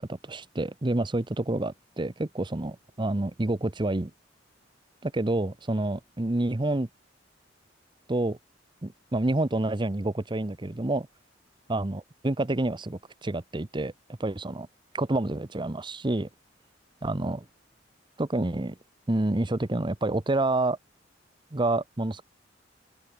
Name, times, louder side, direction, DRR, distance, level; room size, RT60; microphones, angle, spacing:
voice 1, 0.0-4.1 5.0-6.9 8.1-8.4 8.8-11.1 11.7-13.9 14.2-14.7 14.9-16.3 17.0-17.4 18.2-18.8 19.1-20.8 21.5-22.2, right 2 dB, 25° right, 0.8 m, -28 dB
open air
head